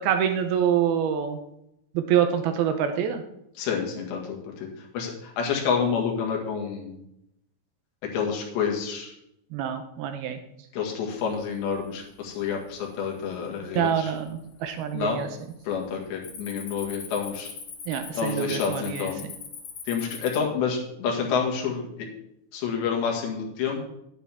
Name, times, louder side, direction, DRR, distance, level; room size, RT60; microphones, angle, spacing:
voice 1, 0.0-1.4 1.9-3.2 9.5-10.4 13.6-15.3 17.9-19.1, right 9 dB, 75° right, 7 dB, 2.5 m, -26 dB
voice 2, 3.6-4.7 4.9-7.0 8.0-9.1 10.7-14.1 14.9-15.2 15.7-17.5 18.2-19.2 19.9-22.1 22.5-23.8, left 6 dB, 85° left, 0 dB, 4.1 m, -28 dB
Cricket, 11.4-11.9 12.3-12.7 13.3-13.4 14.0-14.7 14.9-15.2 15.5-20.4, left 6 dB, 55° left, 2.6 m, -41 dB
11.0 x 10.0 x 3.5 m, 0.80 s
omnidirectional pair, 4.9 m